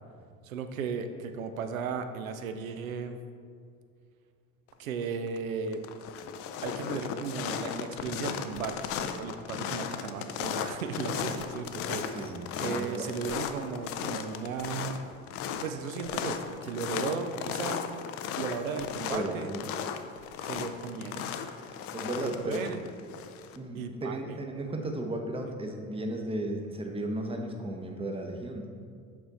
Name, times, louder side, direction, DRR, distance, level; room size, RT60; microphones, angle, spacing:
voice 1, 0.4-3.2 4.8-5.8 6.6-15.0 15.6-17.8 18.4-19.5 20.4-21.4 22.2-22.8 23.7-24.4, right 5 dB, 70° right, 8 dB, 0.6 m, -36 dB
sound 1, 5.0-5.4 5.7-23.6, left 8 dB, 35° left, 0.4 m, -36 dB
voice 2, 12.1-13.1 19.1-19.7 21.9-22.7 23.6-28.7, right 1 dB, 15° right, 3 dB, 0.8 m, -35 dB
8.0 x 4.4 x 4.1 m, 2.2 s
figure-of-eight pair, 60°, 42 cm